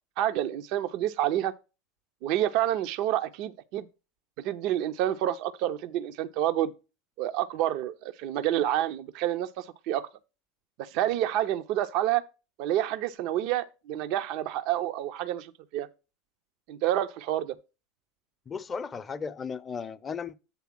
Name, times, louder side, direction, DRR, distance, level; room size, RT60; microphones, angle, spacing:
voice 1, 0.2-1.5 2.2-3.9 4.4-6.7 7.2-10.1 10.8-12.2 12.6-15.9 16.7-17.6, right 12 dB, 55° right, 0.5 m, -28 dB
voice 2, 18.5-20.4, left 5 dB, 25° left, 0.6 m, -35 dB
8.3 x 3.4 x 5.9 m
figure-of-eight pair, 75°, 0 cm